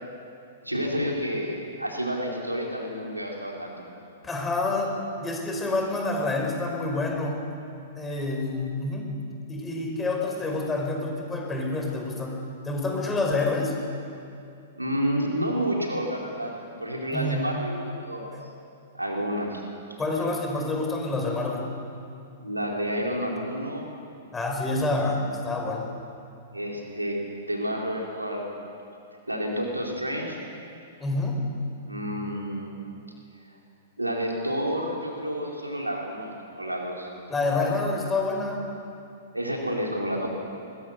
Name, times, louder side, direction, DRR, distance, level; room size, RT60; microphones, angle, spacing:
voice 1, 0.6-3.7 14.8-18.3 18.9-19.6 22.4-23.9 26.5-28.5 29.3-30.4 31.9-32.8 34.0-37.1 39.3-40.3, equal, 90° right, -1 dB, 4.4 m, -30 dB
voice 2, 4.2-4.9 5.2-7.4 8.0-9.1 9.5-12.4 12.6-13.7 17.1-17.5 20.0-21.7 24.3-25.9 31.0-31.4 37.3-38.7, left 2 dB, 10° left, 1 dB, 5.2 m, -27 dB
22.0 x 22.0 x 6.7 m, 2.5 s
figure-of-eight pair, 105°, 0 cm